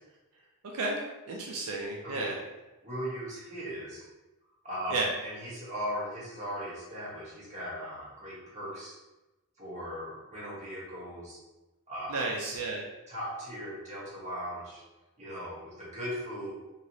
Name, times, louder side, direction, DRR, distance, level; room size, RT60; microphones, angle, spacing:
voice 1, 0.6-1.0 1.3-2.4 4.9-5.1 12.1-12.8, right 3 dB, 80° right, -1 dB, 0.4 m, -32 dB
voice 2, 2.8-4.0 4.6-8.9 9.6-11.4 11.9-12.2 13.1-14.8 15.2-16.5, equal, 35° right, -8 dB, 1.2 m, -38 dB
3.0 x 2.8 x 2.6 m, 1.1 s
head